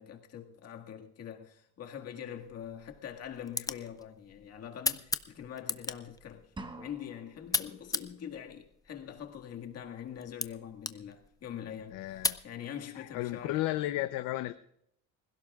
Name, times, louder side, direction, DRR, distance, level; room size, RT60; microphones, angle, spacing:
voice 1, 0.0-6.5 6.8-13.6, left 9 dB, 50° left, 2.0 m, -44 dB
sound 1, 2.4-12.5, left 4 dB, 10° left, 0.5 m, -39 dB
sound 2, 6.6-7.5, right 2 dB, 15° right, 1.2 m, -45 dB
voice 2, 11.9-12.4 13.0-14.5, left 16 dB, 75° left, 0.7 m, -33 dB
26.0 x 16.5 x 2.4 m
cardioid pair, 135°, 33 cm